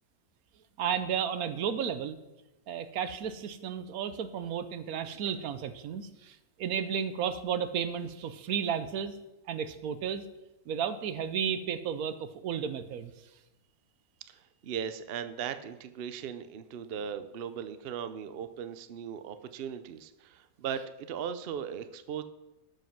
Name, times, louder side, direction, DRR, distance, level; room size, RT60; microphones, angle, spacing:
voice 1, 0.8-2.2 2.7-9.1 9.5-10.2 10.7-13.1, right 8 dB, 80° right, 11 dB, 1.2 m, -33 dB
voice 2, 14.3-22.2, right 8 dB, 55° right, 11 dB, 0.7 m, -38 dB
12.5 x 5.3 x 5.8 m, 0.96 s
omnidirectional pair, 1.5 m